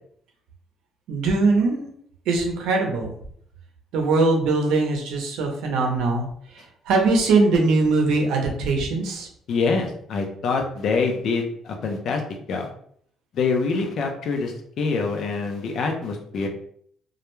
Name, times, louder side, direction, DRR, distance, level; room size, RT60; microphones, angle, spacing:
voice 1, 1.1-1.9 2.3-3.1 3.9-6.3 6.9-9.3, right 3 dB, 80° right, 2 dB, 0.6 m, -21 dB
voice 2, 9.5-12.2 12.5-12.7 13.3-16.5, left 4 dB, 55° left, 3 dB, 0.5 m, -25 dB
2.3 x 2.1 x 3.0 m, 0.63 s
cardioid pair, 150°, 0 cm